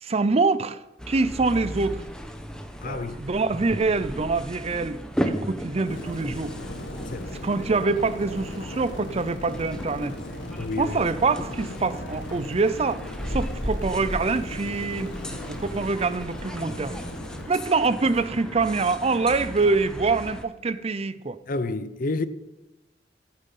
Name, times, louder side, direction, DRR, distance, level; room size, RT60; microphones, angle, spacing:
voice 1, 0.0-2.0 2.8-6.6 7.4-10.2 10.8-15.1 15.5-17.0 17.5-21.4, right 3 dB, 35° right, 0.5 m, -25 dB
sound 1, 1.0-20.4, equal, 5° left, 1.0 m, -36 dB
voice 2, 2.8-3.2 7.1-7.5 10.6-11.0 21.5-22.3, left 2 dB, 50° left, 0.6 m, -29 dB
sound 2, 5.8-17.5, left 1 dB, 90° left, 1.7 m, -37 dB
14.0 x 9.2 x 5.6 m
head